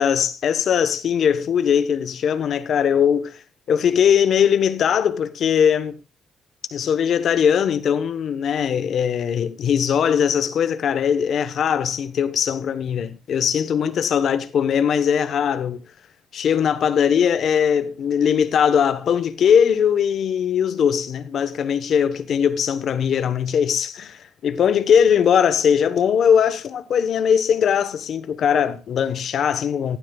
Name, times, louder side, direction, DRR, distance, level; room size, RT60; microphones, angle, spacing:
voice 1, 0.0-3.4 3.7-6.0 6.7-15.8 16.3-30.0, left 8 dB, 65° left, 1.1 m, -20 dB
16.5 x 11.5 x 2.3 m
cardioid pair, 90°, 0 cm